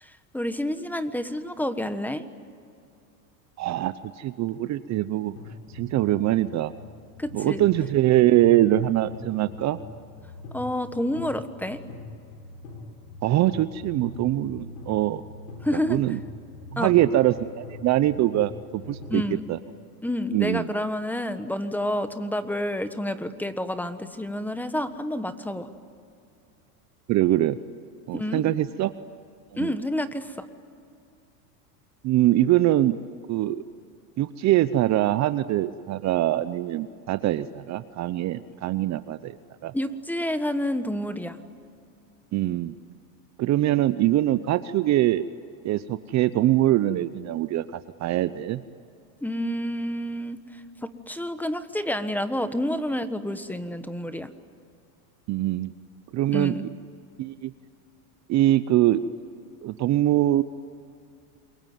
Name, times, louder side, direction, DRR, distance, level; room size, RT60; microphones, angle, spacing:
voice 1, 0.0-2.2 7.2-7.6 10.5-11.8 15.6-16.0 16.8-16.9 19.1-19.4 20.0-25.7 28.1-28.4 29.6-30.5 39.7-41.4 49.2-50.4 50.8-54.3 56.3-56.7, left 1 dB, 5° left, 11 dB, 1.3 m, -29 dB
voice 2, 3.6-5.3 5.7-6.7 7.3-9.8 13.2-15.2 15.7-16.2 16.7-19.2 19.5-19.6 20.3-20.7 27.1-27.6 28.1-28.9 29.5-29.7 32.0-33.0 33.3-33.6 34.2-39.4 39.6-39.7 42.3-42.7 43.4-45.3 45.6-48.6 55.3-55.7 56.1-56.6 57.2-57.5 58.3-59.0 59.6-60.4, right 14 dB, 35° right, 14 dB, 0.7 m, -23 dB
sound 1, 5.4-19.4, left 2 dB, 80° left, 7.2 m, -43 dB
28.0 x 23.0 x 9.4 m, 2.5 s
supercardioid pair, 120°, 46 cm